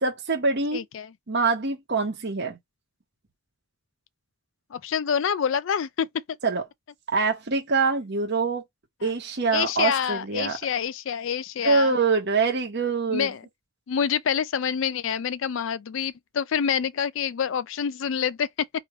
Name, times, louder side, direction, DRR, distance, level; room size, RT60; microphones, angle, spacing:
voice 1, 0.0-0.8 1.3-2.6 6.4-6.6 7.1-8.6 9.0-10.6 11.6-13.3, right 4 dB, 55° right, 1.1 m, -24 dB
voice 2, 0.7-1.1 4.7-6.4 9.0-9.1 9.5-11.9 13.1-13.4 13.9-18.7, left 7 dB, 60° left, 0.4 m, -27 dB
3.1 x 3.1 x 4.7 m
head